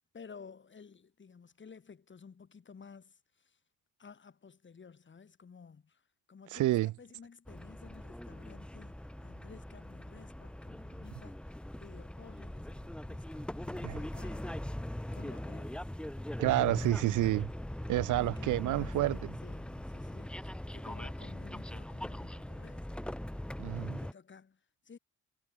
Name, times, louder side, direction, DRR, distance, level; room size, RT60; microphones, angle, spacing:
voice 1, 0.1-3.6 4.0-6.0 6.3-14.6 15.1-15.9 18.2-22.9 24.0-25.0, left 5 dB, 40° left, 6.9 m, -54 dB
voice 2, 6.5-6.9 13.8-14.0 16.4-17.5 17.9-19.3 23.6-24.0, right 16 dB, 80° right, 0.9 m, -29 dB
sound 1, 7.5-24.1, left 1 dB, 5° left, 1.0 m, -41 dB
cardioid pair, 90°, 30 cm